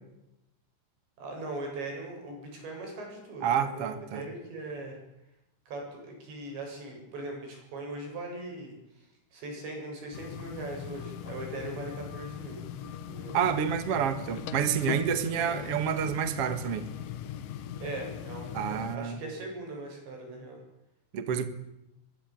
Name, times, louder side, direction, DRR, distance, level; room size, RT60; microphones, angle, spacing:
voice 1, 1.2-5.0 5.7-12.6 13.1-13.4 15.3-15.7 17.8-20.6, right 2 dB, 70° right, 10.5 m, -40 dB
voice 2, 3.4-4.2 13.3-16.9 18.5-19.2 21.1-21.5, right 8 dB, 50° right, 2.0 m, -29 dB
sound 1, 10.1-19.0, left 9 dB, 70° left, 2.2 m, -39 dB
24.0 x 23.5 x 9.2 m
omnidirectional pair, 5.3 m